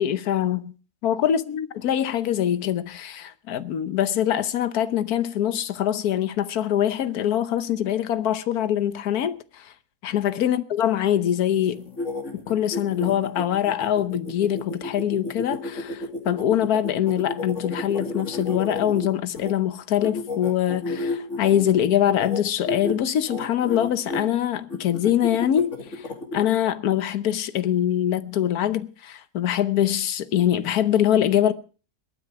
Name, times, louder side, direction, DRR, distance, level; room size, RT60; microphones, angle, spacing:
voice 1, 0.0-0.7 1.0-9.7 10.0-11.9 12.3-31.5, left 10 dB, 70° left, 1.4 m, -24 dB
sound 1, 11.7-19.5 20.0-21.7 22.1-22.4 22.7-23.0 23.3-24.2 24.7-26.4, left 2 dB, 50° left, 2.8 m, -32 dB
21.0 x 9.6 x 4.7 m
omnidirectional pair, 1.7 m